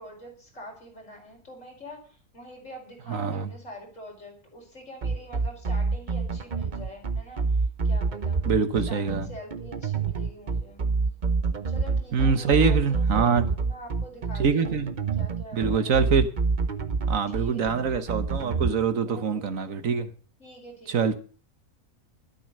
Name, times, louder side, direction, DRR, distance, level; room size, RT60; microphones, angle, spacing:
voice 1, 0.0-8.4 8.9-10.8 11.6-14.8 15.2-16.1 17.3-17.9 19.0-19.4 20.4-21.2, equal, 60° left, 5.1 m, -45 dB
voice 2, 3.1-3.5 8.4-9.3 12.1-13.5 14.4-14.9 15.5-16.3 17.1-20.1 20.9-21.1, right 5 dB, 70° right, 1.5 m, -24 dB
sound 1, 5.0-18.7, right 4 dB, 40° right, 0.9 m, -27 dB
12.0 x 10.0 x 6.6 m
omnidirectional pair, 1.5 m